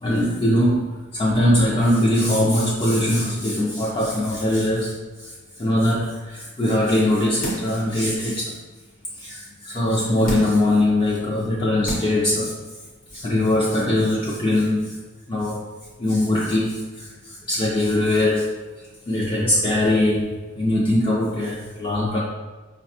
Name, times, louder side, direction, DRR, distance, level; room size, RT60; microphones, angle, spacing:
voice 1, 0.0-4.9 5.2-5.3 5.6-8.5 9.2-12.6 13.1-14.9 15.3-15.7 16.0-17.1 17.5-18.5 19.1-22.2, left 1 dB, 25° left, -5 dB, 0.4 m, -21 dB
sound 1, 7.4-7.9 8.3-8.4 10.2-10.7 11.4-11.5 11.8-12.3 12.6-12.7, right 1 dB, 45° left, 0.8 m, -29 dB
4.7 x 2.1 x 2.7 m, 1.3 s
head